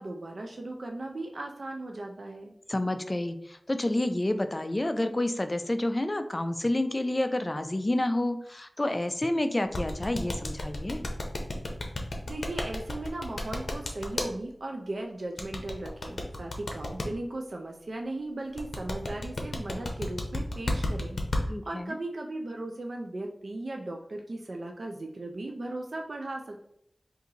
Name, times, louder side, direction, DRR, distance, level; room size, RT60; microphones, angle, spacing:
voice 1, 0.0-2.5 12.2-26.7, right 2 dB, 75° right, 1 dB, 0.4 m, -37 dB
voice 2, 2.7-11.1 21.5-22.0, left 1 dB, 30° left, 8 dB, 0.3 m, -29 dB
sound 1, 9.7-14.3 15.4-17.1 18.6-21.4, left 2 dB, 85° left, 0.6 m, -31 dB
3.8 x 2.6 x 2.8 m, 0.74 s
wide cardioid pair, 70°, 0 cm